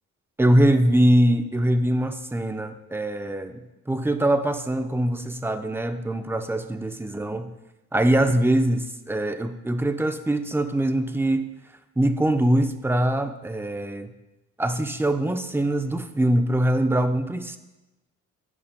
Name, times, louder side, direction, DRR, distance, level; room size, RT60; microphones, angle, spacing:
voice 1, 0.4-3.6 3.9-7.5 7.9-11.5 12.0-14.1 14.6-17.6, right 1 dB, 5° right, 7 dB, 0.7 m, -23 dB
15.0 x 5.1 x 2.3 m, 1.0 s
supercardioid pair, 60°, 32 cm